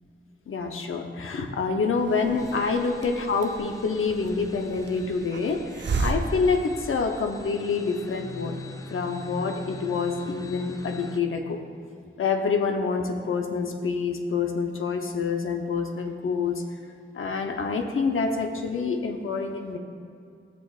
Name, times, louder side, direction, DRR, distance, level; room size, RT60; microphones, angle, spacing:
voice 1, 0.5-8.6 8.9-11.6 12.2-16.6 17.1-19.8, left 4 dB, 85° left, 4 dB, 0.8 m, -27 dB
Hiss, 2.0-7.5, right 3 dB, 60° right, 0.6 m, -34 dB
sound 1, 2.4-11.2, left 3 dB, 15° left, 0.3 m, -44 dB
14.5 x 7.1 x 2.4 m, 2.4 s
wide cardioid pair, 170°, 21 cm